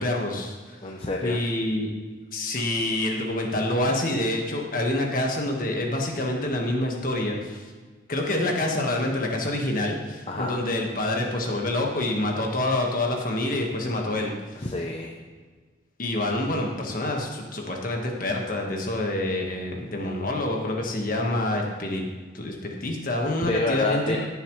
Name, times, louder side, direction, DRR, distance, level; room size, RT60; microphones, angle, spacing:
voice 1, 0.0-0.8 1.2-1.9 2.3-7.7 8.1-14.3 16.0-22.0 22.3-24.2, left 1 dB, 45° left, 0 dB, 1.7 m, -27 dB
voice 2, 0.8-1.4 10.3-10.6 14.5-15.2 23.4-24.3, left 2 dB, 30° left, 1 dB, 0.7 m, -28 dB
17.0 x 7.2 x 3.3 m, 1.4 s
head